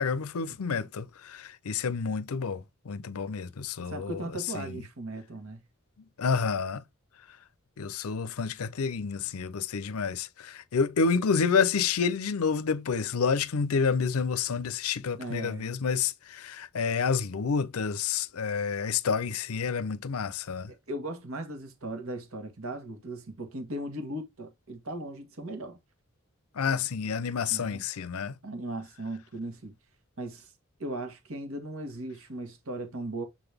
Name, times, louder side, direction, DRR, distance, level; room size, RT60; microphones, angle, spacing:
voice 1, 0.0-4.2 4.5-4.8 6.2-6.8 7.8-20.7 26.5-28.3, left 5 dB, 85° left, 0.5 m, -29 dB
voice 2, 3.9-5.6 15.2-15.7 20.7-25.8 27.5-27.8 28.4-29.7 30.2-30.5 30.8-33.2, right 1 dB, 75° right, 1.5 m, -37 dB
7.4 x 3.9 x 3.4 m
head